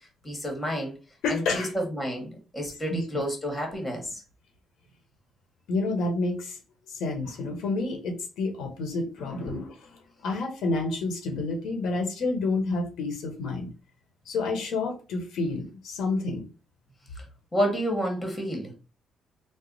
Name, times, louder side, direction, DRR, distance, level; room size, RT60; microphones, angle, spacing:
voice 1, 0.2-0.9 1.3-4.2 9.5-9.6 17.2-17.3 17.5-18.7, equal, 15° left, 2 dB, 1.4 m, -30 dB
voice 2, 1.2-1.7 2.9-3.0 5.7-6.6 6.9-9.7 10.2-13.7 14.2-16.4, left 3 dB, 80° left, 3 dB, 1.1 m, -29 dB
3.4 x 2.0 x 3.9 m, 0.34 s
cardioid pair, 90°, 0 cm